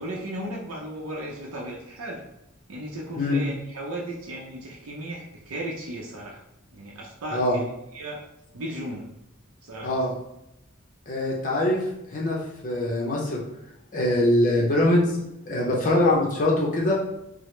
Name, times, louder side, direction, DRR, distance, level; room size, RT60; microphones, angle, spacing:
voice 1, 0.0-2.2 2.7-6.4 6.7-8.2 8.5-9.0 9.6-10.0, right 1 dB, 85° right, -2 dB, 0.6 m, -35 dB
voice 2, 11.1-13.4 13.9-15.2 15.5-17.0, left 1 dB, 40° left, -3 dB, 0.6 m, -23 dB
4.7 x 2.0 x 3.1 m, 0.86 s
head